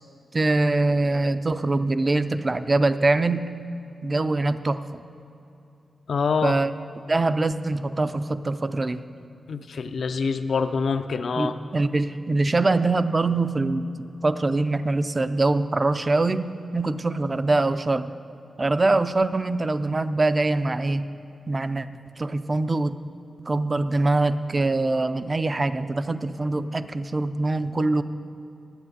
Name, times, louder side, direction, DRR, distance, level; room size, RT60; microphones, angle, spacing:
voice 1, 0.3-3.5 4.0-5.0 6.4-6.7 7.1-9.0 11.4-18.1 18.6-21.0 21.5-21.9 22.2-22.9 23.5-28.0, right 2 dB, 30° right, 12 dB, 0.4 m, -23 dB
voice 2, 6.1-6.5 9.5-11.5, left 5 dB, 70° left, 9 dB, 0.5 m, -25 dB
10.0 x 8.4 x 7.9 m, 2.8 s
wide cardioid pair, 120°, 0 cm